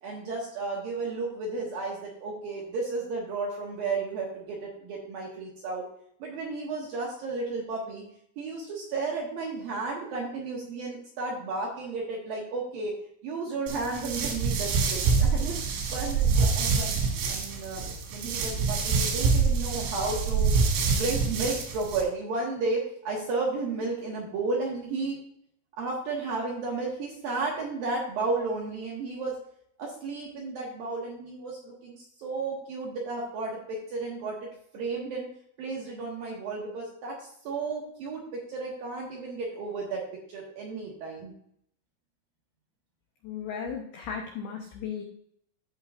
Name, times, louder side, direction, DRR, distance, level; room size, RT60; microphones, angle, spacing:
voice 1, 0.0-5.8 6.2-8.0 8.4-12.9 13.2-15.6 15.9-17.0 17.3-17.8 18.1-20.5 21.0-25.2 25.8-29.4 29.8-34.5 34.7-35.3 35.6-40.0 40.3-41.3, right 3 dB, 65° right, -3 dB, 2.4 m, -33 dB
sound 1, 13.7-22.0, right 5 dB, 90° right, 4.5 m, -26 dB
voice 2, 43.2-45.0, left 7 dB, 85° left, 1 dB, 2.2 m, -35 dB
14.0 x 5.7 x 2.5 m, 0.67 s
omnidirectional pair, 5.9 m